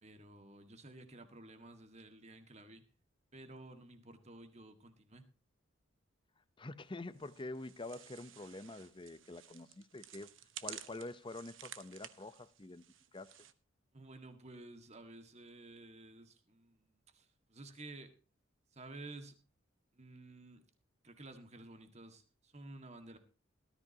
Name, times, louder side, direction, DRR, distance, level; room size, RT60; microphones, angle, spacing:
voice 1, 0.0-2.8 3.3-5.2 13.9-18.1 18.7-19.4 19.9-20.6 21.0-23.2, right 2 dB, 35° right, 1.8 m, -53 dB
voice 2, 6.6-10.3 10.6-12.8 13.1-13.3, left 2 dB, 25° left, 0.7 m, -46 dB
sound 1, 7.1-13.5, right 11 dB, 75° right, 1.1 m, -53 dB
18.5 x 13.5 x 2.9 m
head